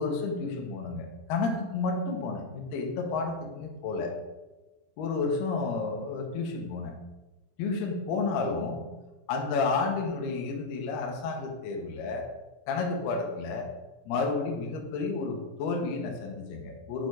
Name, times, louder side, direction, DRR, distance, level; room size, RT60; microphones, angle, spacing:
voice 1, 0.0-4.1 5.0-6.9 7.6-8.8 9.3-12.3 12.7-13.7 14.1-17.1, left 4 dB, 85° left, 2 dB, 2.2 m, -31 dB
7.4 x 4.5 x 4.7 m, 1.1 s
omnidirectional pair, 5.9 m